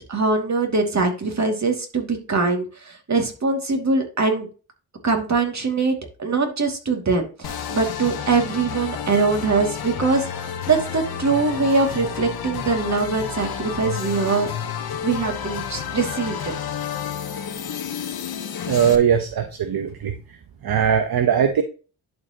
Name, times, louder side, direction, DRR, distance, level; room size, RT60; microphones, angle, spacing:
voice 1, 0.1-4.5 5.0-14.5 15.0-16.5, right 4 dB, 40° right, 3 dB, 2.6 m, -22 dB
sound 1, 7.4-19.0, left 8 dB, 60° left, 1.4 m, -30 dB
voice 2, 18.7-20.1 20.6-21.6, right 8 dB, 60° right, 7 dB, 1.0 m, -20 dB
11.0 x 4.8 x 3.0 m, 0.35 s
cardioid pair, 60°, 42 cm